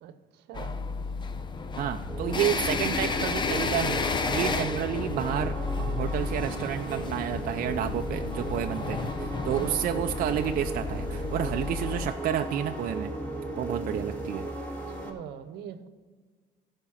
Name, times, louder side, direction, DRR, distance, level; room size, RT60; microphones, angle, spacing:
voice 1, 0.0-0.9 9.5-9.8 14.9-15.9, right 9 dB, 80° right, 11 dB, 0.9 m, -41 dB
sound 1, 0.5-12.1, left 4 dB, 25° left, 0.7 m, -32 dB
voice 2, 1.8-13.2 13.6-14.5, right 10 dB, 55° right, 6 dB, 0.5 m, -30 dB
Bass drum, 2.0-9.4, left 3 dB, 75° left, 2.0 m, -43 dB
sound 2, 2.1-15.1, right 1 dB, 10° left, 2.3 m, -36 dB
14.5 x 5.3 x 5.7 m, 1.5 s
cardioid pair, 110°, 17 cm